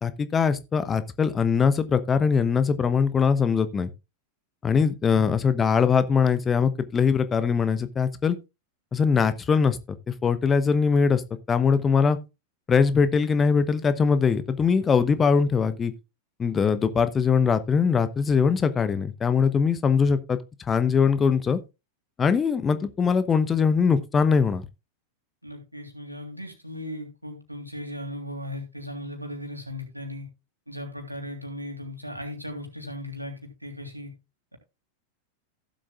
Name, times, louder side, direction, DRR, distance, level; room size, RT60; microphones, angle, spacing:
voice 1, 0.0-3.9 4.6-8.4 8.9-9.8 10.1-11.2 11.5-12.2 12.7-15.9 16.4-20.4 20.7-21.6 22.2-24.7, left 6 dB, 20° left, 0.9 m, -22 dB
voice 2, 25.4-30.3 30.7-34.1, left 1 dB, 90° right, 3.3 m, -37 dB
16.0 x 7.6 x 2.4 m
figure-of-eight pair, 90°, 0 cm